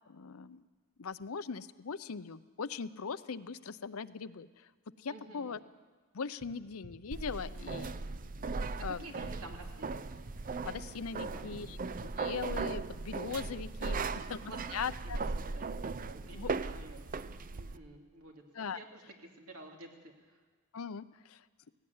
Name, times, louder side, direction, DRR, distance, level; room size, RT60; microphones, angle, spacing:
voice 1, 0.1-0.6 1.0-4.7 5.0-5.6 6.1-7.8 8.8-9.3 10.6-14.0 14.3-15.2 16.3-16.5 18.5-18.8 20.7-21.4, left 5 dB, 70° left, 12 dB, 0.6 m, -40 dB
voice 2, 5.1-5.6 7.4-8.1 8.8-10.0 11.1-11.4 13.9-14.7 15.0-17.0 17.5-18.4 18.7-20.4, right 2 dB, 75° right, 1 dB, 2.8 m, -51 dB
sound 1, 6.4-6.5 6.8-6.9 8.1-8.2 8.5-8.6 9.8-9.9 10.2-10.3 11.5-11.6 12.0-12.1 13.2-13.3, right 1 dB, 55° right, 6.2 m, -52 dB
sound 2, 7.1-17.8, right 4 dB, 40° right, 0.6 m, -38 dB
17.0 x 16.5 x 9.5 m, 1.4 s
head